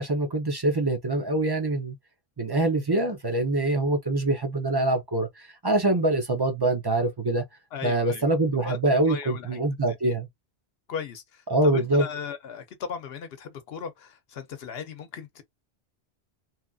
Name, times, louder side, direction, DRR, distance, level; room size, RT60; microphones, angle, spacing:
voice 1, 0.0-1.9 2.4-7.4 7.8-10.3 11.5-12.1, right 2 dB, 30° right, 0.5 m, -24 dB
voice 2, 7.7-8.4 8.6-8.8 9.1-9.6 10.1-10.2 10.9-15.4, left 7 dB, 65° left, 0.8 m, -37 dB
2.9 x 2.5 x 2.3 m
omnidirectional pair, 1.1 m